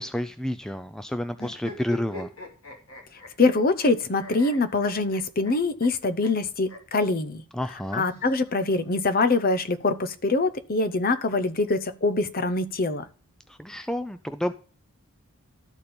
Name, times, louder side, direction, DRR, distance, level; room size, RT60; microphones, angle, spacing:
voice 1, 0.0-2.3 7.5-8.0 13.5-14.5, left 1 dB, 5° left, 10 dB, 0.3 m, -30 dB
sound 1, 1.3-3.9 4.2-5.5 5.8-5.9 6.2-6.3 6.6-6.8 7.8-8.8, left 2 dB, 70° left, 2.6 m, -42 dB
voice 2, 3.4-7.4 7.9-13.1, left 3 dB, 40° left, 12 dB, 0.7 m, -24 dB
12.5 x 4.4 x 5.1 m, 0.38 s
head